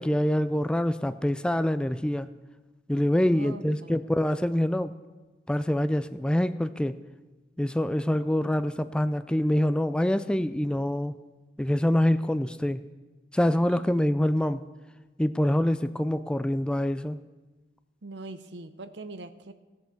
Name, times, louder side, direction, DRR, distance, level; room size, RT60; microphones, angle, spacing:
voice 1, 0.0-2.3 2.9-4.9 5.5-6.9 7.6-11.1 11.6-12.8 13.3-14.6 15.2-17.2, left 1 dB, 5° left, 12 dB, 0.3 m, -25 dB
voice 2, 3.2-4.1 13.7-13.8 18.0-19.5, right 2 dB, 75° right, 12 dB, 0.8 m, -42 dB
16.0 x 5.7 x 7.6 m, 1.2 s
head